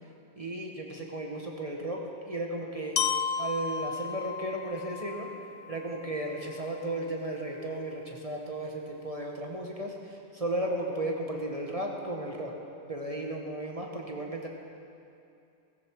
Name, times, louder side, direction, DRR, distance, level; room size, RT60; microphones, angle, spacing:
voice 1, 0.4-3.0 3.4-12.5 12.9-14.5, right 1 dB, 30° right, 0 dB, 1.4 m, -35 dB
Glockenspiel, 3.0-6.9, left 6 dB, 70° left, 0.8 m, -34 dB
17.0 x 16.0 x 4.6 m, 2.6 s
omnidirectional pair, 1.2 m